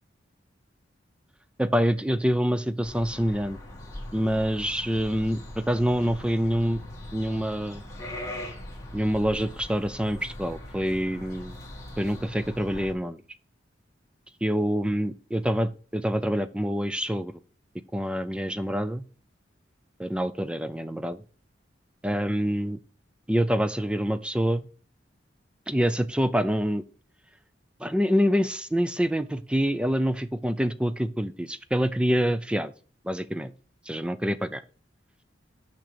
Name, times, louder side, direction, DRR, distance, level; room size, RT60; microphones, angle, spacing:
voice 1, 1.6-3.6 4.1-6.8 7.1-7.8 8.9-11.6 12.0-13.2 14.4-17.3 17.9-19.0 20.0-21.2 22.0-22.8 23.3-24.7 25.7-26.8 27.8-32.7 33.0-33.5 33.9-34.6, equal, 5° right, 0.4 m, -26 dB
sound 1, 2.8-12.9, left 1 dB, 15° left, 1.8 m, -41 dB
6.1 x 5.9 x 6.8 m
head